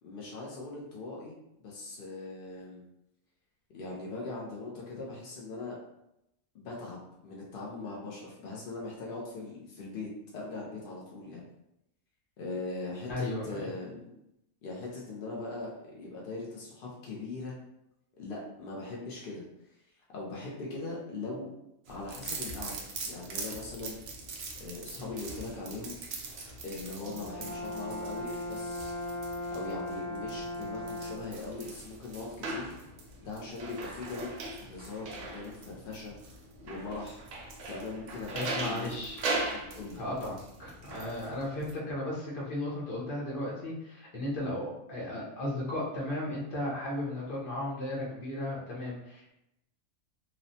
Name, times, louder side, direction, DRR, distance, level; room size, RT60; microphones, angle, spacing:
voice 1, 0.0-1.3 1.6-2.8 3.7-5.8 6.5-11.4 12.4-14.2 14.6-17.6 18.2-19.4 19.7-19.8 20.1-21.5 21.9-22.7 23.0-24.0 24.6-26.0 26.6-28.9 29.5-32.8 33.2-36.1 36.6-37.3 37.7-39.0 39.5-40.0, left 3 dB, 70° left, -3 dB, 0.5 m, -40 dB
voice 2, 13.1-13.7 25.0-25.1 38.3-39.2 40.0-49.3, left 1 dB, 45° left, -5 dB, 0.8 m, -35 dB
sound 1, 21.9-41.7, right 3 dB, 75° right, 0.5 m, -41 dB
Brass instrument, 27.0-31.4, left 1 dB, 55° right, 1.0 m, -38 dB
2.9 x 2.0 x 2.6 m, 0.84 s
omnidirectional pair, 1.5 m